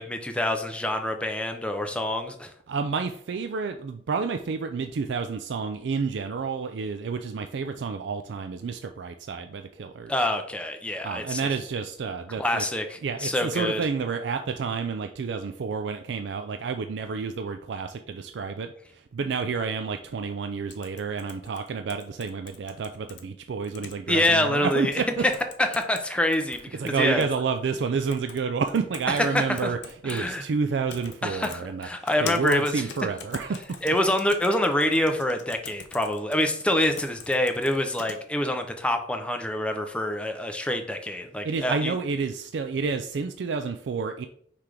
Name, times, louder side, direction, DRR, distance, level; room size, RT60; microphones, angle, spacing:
voice 1, 0.0-2.5 10.1-11.5 12.4-13.8 24.1-24.9 25.2-25.3 25.6-27.3 29.3-29.7 30.0-30.4 31.2-32.8 33.8-41.9, left 1 dB, 5° left, 5 dB, 0.6 m, -26 dB
voice 2, 2.7-10.1 11.0-12.6 13.0-25.2 26.7-29.8 30.0-33.6 41.4-44.3, right 5 dB, 80° right, 7 dB, 0.4 m, -30 dB
sound 1, 20.7-23.2 23.6-24.3 24.7-24.8 25.3-26.0 26.3-27.3 28.1-28.4 28.7-30.2 30.9-31.1 31.4-38.2, left 6 dB, 85° left, 0.9 m, -42 dB
5.8 x 3.3 x 4.9 m, 0.63 s
head